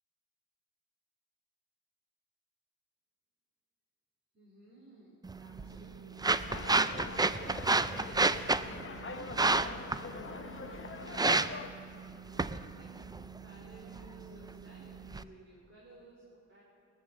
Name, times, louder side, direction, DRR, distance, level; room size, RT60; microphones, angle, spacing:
voice 1, 4.3-6.9 7.2-11.5 12.0-16.6, right 1 dB, 40° right, -6 dB, 3.4 m, -57 dB
sound 1, 5.2-15.2, right 3 dB, 15° right, 0.3 m, -32 dB
sound 2, 6.5-11.7, left 4 dB, 40° left, 0.9 m, -43 dB
19.5 x 7.4 x 7.2 m, 2.5 s
wide cardioid pair, 95°, 30 cm